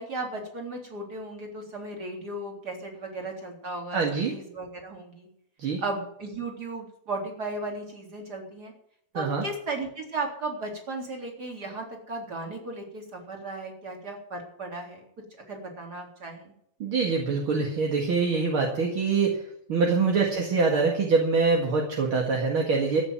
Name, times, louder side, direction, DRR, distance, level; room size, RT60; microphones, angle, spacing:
voice 1, 0.0-5.3 5.8-8.7 9.1-15.0 15.4-16.5 20.3-20.4, right 2 dB, 25° right, 1 dB, 3.8 m, -36 dB
voice 2, 3.9-4.3 5.6-5.8 9.2-9.4 16.8-19.4 19.7-23.0, right 4 dB, 45° right, 1 dB, 2.1 m, -24 dB
14.5 x 8.0 x 9.2 m, 0.72 s
omnidirectional pair, 4.2 m